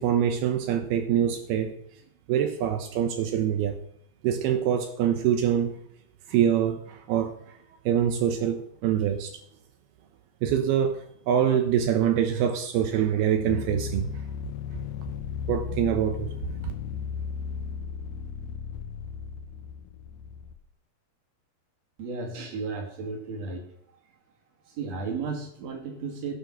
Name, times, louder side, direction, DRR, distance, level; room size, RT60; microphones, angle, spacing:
voice 1, 0.0-1.7 2.3-3.8 4.2-5.8 6.3-7.3 7.9-9.3 10.4-14.1 15.5-16.3, right 9 dB, 80° right, 6 dB, 2.9 m, -25 dB
sound 1, 13.4-20.6, left 7 dB, 80° left, 1.6 m, -35 dB
voice 2, 22.0-23.6 24.7-26.3, right 4 dB, 45° right, 2 dB, 3.5 m, -34 dB
16.5 x 6.7 x 6.1 m, 0.69 s
omnidirectional pair, 4.5 m